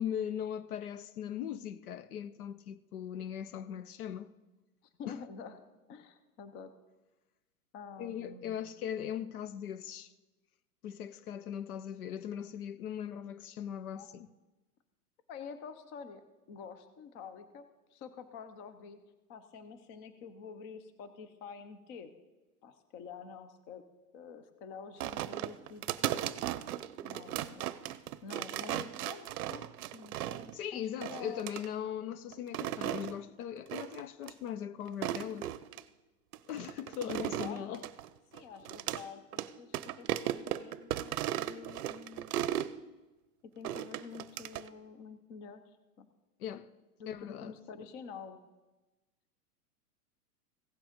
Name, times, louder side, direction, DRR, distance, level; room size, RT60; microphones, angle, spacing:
voice 1, 0.0-4.3 5.0-5.2 8.0-10.1 10.8-14.3 30.5-35.5 36.5-37.8 46.4-46.7 47.1-47.5, left 9 dB, 65° left, 0.7 m, -39 dB
voice 2, 5.0-5.6 5.9-6.7 7.7-8.7 13.9-14.1 15.3-19.0 19.3-22.1 22.6-23.8 24.1-26.5 26.8-31.5 37.2-37.8 38.3-42.4 43.6-45.6 46.0-46.1 47.0-48.4, left 6 dB, 25° left, 0.6 m, -48 dB
sound 1, 25.0-30.6 31.0-31.7 32.3-33.1 33.7-34.0 34.3-34.4 34.9-35.8 36.3-39.0 39.3-39.5 39.7-42.7 43.6-44.7, right 13 dB, 65° right, 0.6 m, -36 dB
16.0 x 6.0 x 5.1 m
hypercardioid pair, 140°, 47 cm